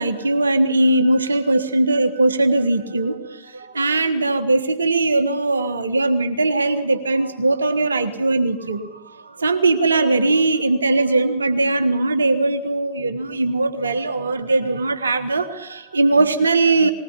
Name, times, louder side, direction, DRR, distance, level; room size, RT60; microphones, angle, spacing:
voice 1, 0.0-8.9 9.4-16.9, right 2 dB, 75° right, 9 dB, 1.4 m, -20 dB
20.5 x 19.5 x 7.0 m, 0.95 s
figure-of-eight pair, 90°, 0 cm